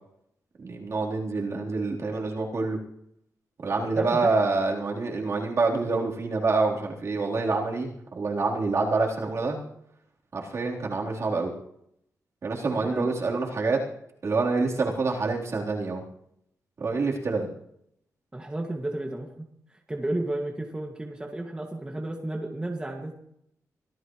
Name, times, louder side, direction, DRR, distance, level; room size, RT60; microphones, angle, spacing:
voice 1, 0.6-2.8 3.6-9.6 10.3-11.5 12.4-13.8 14.2-16.0 16.8-17.5, right 3 dB, 50° right, -2 dB, 3.8 m, -27 dB
voice 2, 4.0-4.3 12.8-13.1 18.3-19.4 19.7-23.1, right 1 dB, 15° right, 0 dB, 2.2 m, -32 dB
25.5 x 16.0 x 3.2 m, 0.73 s
wide cardioid pair, 125°, 6 cm